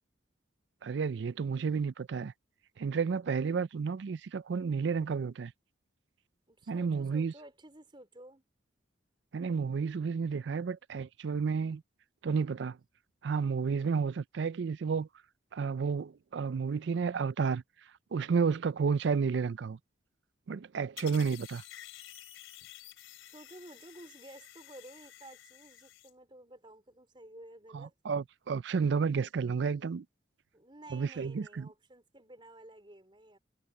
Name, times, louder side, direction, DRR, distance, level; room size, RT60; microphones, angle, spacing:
voice 1, 0.8-2.3 2.8-5.5 6.7-7.3 9.3-11.8 12.2-12.8 13.2-15.1 15.5-17.6 18.1-19.8 20.5-21.6 27.7-30.1 30.9-31.7, right 5 dB, 60° right, 0.4 m, -31 dB
voice 2, 6.5-8.4 23.3-27.9 30.5-33.4, right 1 dB, 25° right, 4.3 m, -53 dB
sound 1, 21.0-26.1, left 13 dB, 90° left, 4.1 m, -51 dB
head